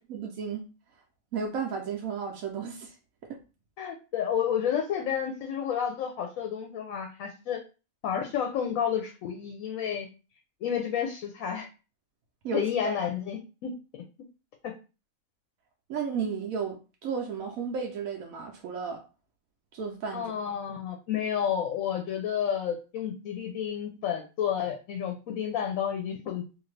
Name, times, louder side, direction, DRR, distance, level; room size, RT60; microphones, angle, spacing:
voice 1, 0.1-0.6 1.3-2.9 12.4-13.0 15.9-19.0 19.7-20.3, right 6 dB, 80° right, 1 dB, 1.0 m, -33 dB
voice 2, 3.8-7.6 8.0-10.1 10.6-11.7 12.5-13.7 20.1-26.4, left 8 dB, 75° left, 4 dB, 1.0 m, -30 dB
2.7 x 2.5 x 3.1 m, 0.32 s
omnidirectional pair, 1.5 m